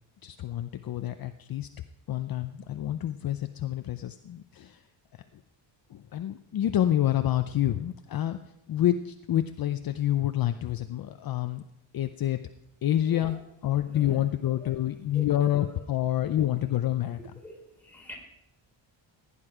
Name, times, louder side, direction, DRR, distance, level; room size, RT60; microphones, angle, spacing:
voice 1, 0.2-1.7 2.1-4.9 5.1-5.4 5.9-11.6 11.9-12.4 12.8-17.2, left 12 dB, 50° left, 9 dB, 0.6 m, -28 dB
voice 2, 15.1-15.8 16.2-16.4 17.4-18.2, equal, 5° left, -2 dB, 3.4 m, -45 dB
15.5 x 10.0 x 4.9 m, 0.85 s
wide cardioid pair, 175°, 45 cm